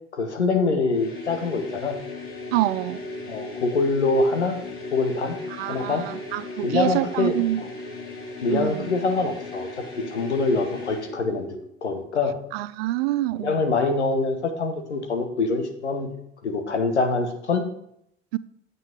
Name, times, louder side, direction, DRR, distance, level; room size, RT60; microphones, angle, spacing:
voice 1, 0.1-2.0 3.3-4.6 4.9-5.4 5.7-6.1 6.6-7.7 8.4-9.7 10.1-11.5 11.8-12.4 13.4-16.1 16.4-17.6, left 3 dB, 85° left, 1.1 m, -24 dB
sound 1, 0.9-11.2, left 2 dB, 40° left, 3.3 m, -36 dB
voice 2, 2.5-3.0 5.5-7.6 8.5-8.9 12.5-13.6 18.3-18.4, right 16 dB, 65° right, 0.5 m, -26 dB
9.0 x 8.1 x 3.6 m
figure-of-eight pair, 60°, 33 cm